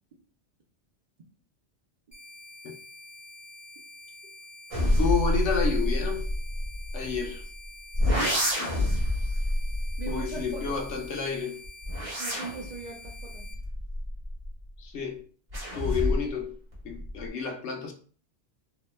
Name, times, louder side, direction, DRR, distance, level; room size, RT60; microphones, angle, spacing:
sound 1, 2.1-13.5, left 2 dB, 10° left, 0.6 m, -48 dB
sound 2, 4.7-7.4 7.9-11.1 11.6-14.7 15.5-16.4 16.7-17.3, left 1 dB, 30° right, 1.0 m, -28 dB
voice 1, 5.0-6.2 6.9-7.4 10.1-11.6 14.8-15.2 15.7-16.5 16.8-17.9, left 5 dB, 75° left, 0.9 m, -30 dB
voice 2, 8.0-8.4 10.0-10.8 12.2-13.5, right 3 dB, 55° right, 0.5 m, -39 dB
2.7 x 2.2 x 3.1 m
omnidirectional pair, 1.2 m